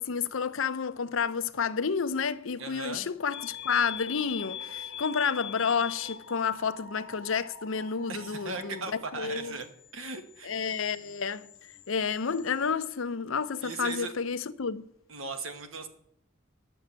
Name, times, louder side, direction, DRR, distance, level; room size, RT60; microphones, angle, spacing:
voice 1, 0.0-8.8 9.2-9.5 10.5-11.5 11.9-14.8, left 6 dB, 75° left, 0.6 m, -30 dB
voice 2, 2.6-3.1 8.1-9.7 9.9-10.5 13.6-14.1 15.1-15.9, right 4 dB, 80° right, 1.5 m, -38 dB
sound 1, 3.3-12.7, left 7 dB, 60° left, 1.2 m, -44 dB
10.5 x 6.9 x 8.0 m
head